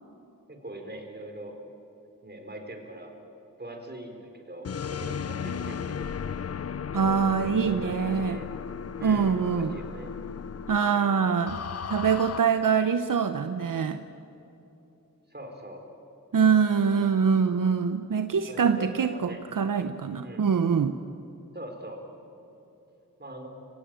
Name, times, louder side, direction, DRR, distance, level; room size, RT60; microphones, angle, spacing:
voice 1, 0.5-1.6 2.2-3.2 3.6-6.1 6.9-8.5 9.0-10.1 15.3-15.9 18.5-19.4 20.2-20.5 21.5-22.0 23.2-23.5, right 1 dB, 30° right, 3 dB, 4.4 m, -42 dB
sound 1, 4.6-12.4, left 7 dB, 45° left, 0.5 m, -35 dB
voice 2, 6.9-8.4 9.0-9.7 10.7-11.6 11.9-14.0 16.3-21.0, right 6 dB, 70° right, 9 dB, 0.9 m, -24 dB
25.5 x 17.5 x 8.9 m, 3.0 s
wide cardioid pair, 75°, 33 cm